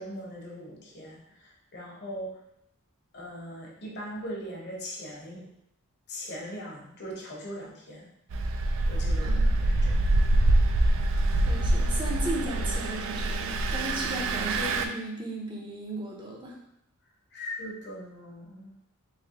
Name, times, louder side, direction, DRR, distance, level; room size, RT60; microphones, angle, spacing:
voice 1, 0.0-2.4 3.1-5.5 6.1-8.1 8.9-10.0 17.3-18.7, equal, 50° left, -3 dB, 0.9 m, -40 dB
Engine, 8.3-14.9, right 2 dB, 60° right, 0.3 m, -25 dB
voice 2, 9.2-9.6 11.4-16.6, right 1 dB, 20° right, -2 dB, 0.6 m, -35 dB
3.3 x 3.0 x 2.9 m, 0.77 s
head